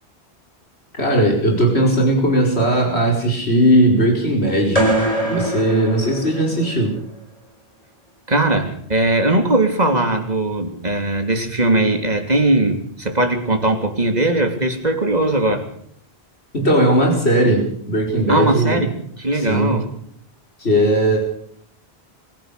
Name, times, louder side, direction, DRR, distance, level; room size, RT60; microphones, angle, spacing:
voice 1, 1.0-4.9 5.3-7.0 16.5-18.8 19.3-19.8 20.6-21.2, right 1 dB, 75° left, 0 dB, 5.2 m, -17 dB
sound 1, 4.8-6.9, right 1 dB, 35° left, 5.7 m, -22 dB
voice 2, 8.3-15.7 18.3-19.9, right 2 dB, 40° right, 5 dB, 3.1 m, -19 dB
24.0 x 17.0 x 6.8 m, 0.65 s
omnidirectional pair, 1.1 m